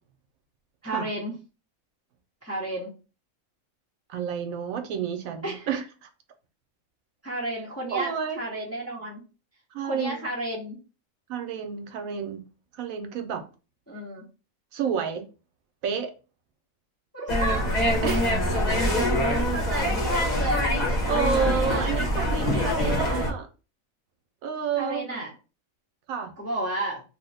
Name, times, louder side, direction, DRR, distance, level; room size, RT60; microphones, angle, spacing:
voice 1, 0.8-1.4 2.4-2.9 5.4-5.7 7.2-9.2 9.8-10.8 13.9-14.2 17.1-18.1 18.6-18.9 19.2-20.7 21.3-22.0 22.3-23.3 24.8-25.3 26.4-27.0, right 1 dB, 15° left, 0.6 m, -33 dB
voice 2, 4.1-6.1 7.9-8.4 9.7-10.3 11.3-12.4 12.7-13.5 14.7-15.3 15.8-16.1 18.0-18.4 21.1-23.5 24.4-25.1 26.1-26.3, right 7 dB, 75° right, 1.0 m, -30 dB
sound 1, 17.3-23.3, equal, 35° left, 0.9 m, -24 dB
2.9 x 2.1 x 4.0 m
omnidirectional pair, 1.5 m